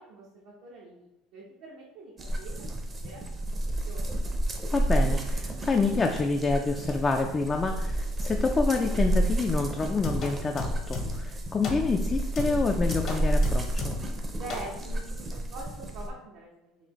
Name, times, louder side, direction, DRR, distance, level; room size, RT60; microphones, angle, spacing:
voice 1, 0.0-3.4 3.8-4.2 14.3-16.5, right 2 dB, 70° right, -4 dB, 0.8 m, -44 dB
sound 1, 2.2-16.1, right 1 dB, 25° right, 0.6 m, -30 dB
voice 2, 4.7-14.0, left 3 dB, 25° left, 3 dB, 0.3 m, -28 dB
sound 2, 9.7-11.3 11.6-12.0 12.4-14.2 14.5-14.7, left 3 dB, 50° left, 0.8 m, -35 dB
4.1 x 2.7 x 2.9 m, 0.89 s
supercardioid pair, 115°, 0 cm